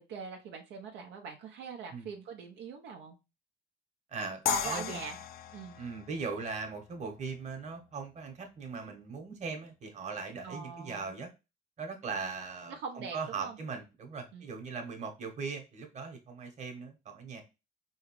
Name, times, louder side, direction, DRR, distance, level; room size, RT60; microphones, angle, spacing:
voice 1, 0.0-3.2 4.5-5.2 5.5-5.8 10.4-11.1 12.7-13.6 14.3-14.4, right 5 dB, 80° right, 0.7 m, -42 dB
voice 2, 4.1-5.0 5.8-11.3 11.8-17.4, right 4 dB, 45° right, 1.2 m, -39 dB
sound 1, 4.5-7.5, left 9 dB, 60° left, 0.4 m, -36 dB
4.8 x 3.1 x 3.1 m
cardioid pair, 110°, 17 cm